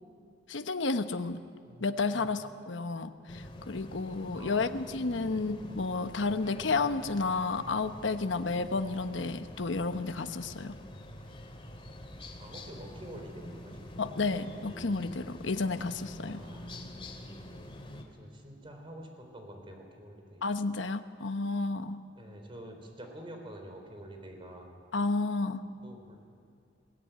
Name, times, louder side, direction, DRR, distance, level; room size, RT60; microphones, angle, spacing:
voice 1, 0.5-1.4 1.8-10.7 14.0-16.4 20.4-22.0 24.9-25.6, left 3 dB, 80° left, 9 dB, 1.0 m, -31 dB
voice 2, 1.7-2.3 4.3-4.8 5.2-5.4 12.4-14.3 16.2-16.8 18.1-20.5 22.2-24.7 25.8-26.2, right 1 dB, 30° right, 3 dB, 3.8 m, -48 dB
sound 1, 3.3-18.0, left 1 dB, 30° left, 2.3 m, -46 dB
21.0 x 18.5 x 9.2 m, 2.3 s
head